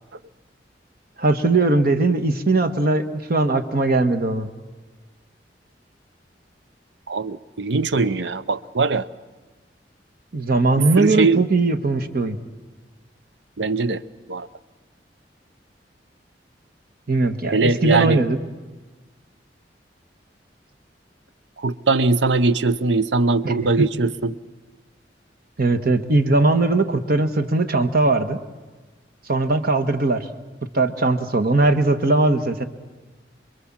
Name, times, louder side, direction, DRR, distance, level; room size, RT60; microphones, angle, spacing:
voice 1, 1.2-4.5 10.3-12.4 17.1-18.4 23.4-23.5 25.6-28.4 29.3-30.2 30.7-32.6, right 2 dB, 55° right, 9 dB, 1.4 m, -19 dB
voice 2, 7.1-9.1 10.8-11.4 13.6-14.0 14.3-14.5 17.5-18.2 21.6-24.4, right 3 dB, 80° right, 14 dB, 0.7 m, -21 dB
27.0 x 22.0 x 7.5 m, 1.3 s
head